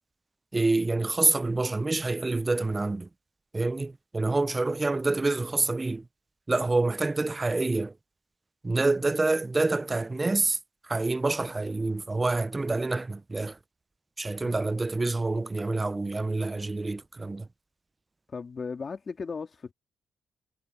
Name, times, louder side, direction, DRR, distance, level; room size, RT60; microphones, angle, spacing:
voice 1, 0.5-3.1 3.5-6.1 6.5-7.9 8.6-10.6 10.8-13.6 14.2-17.5, right 2 dB, 25° right, 0.5 m, -27 dB
voice 2, 18.3-19.7, left 5 dB, 45° left, 3.2 m, -36 dB
cardioid pair, 80°, 0 cm